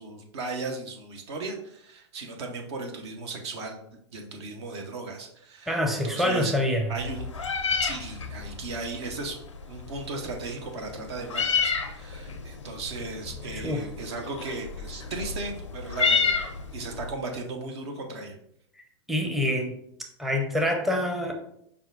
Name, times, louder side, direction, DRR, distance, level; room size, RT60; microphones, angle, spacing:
voice 1, 0.0-6.6 6.9-7.3 7.8-9.4 9.7-16.4 16.7-18.4, right 3 dB, 60° right, 3 dB, 0.9 m, -36 dB
voice 2, 5.7-6.9 13.5-13.9 19.1-19.8 20.2-21.3, left 1 dB, ahead, 2 dB, 0.6 m, -26 dB
Meow, 7.0-17.1, left 5 dB, 85° left, 0.5 m, -31 dB
5.3 x 2.3 x 3.7 m, 0.72 s
figure-of-eight pair, 100°, 15 cm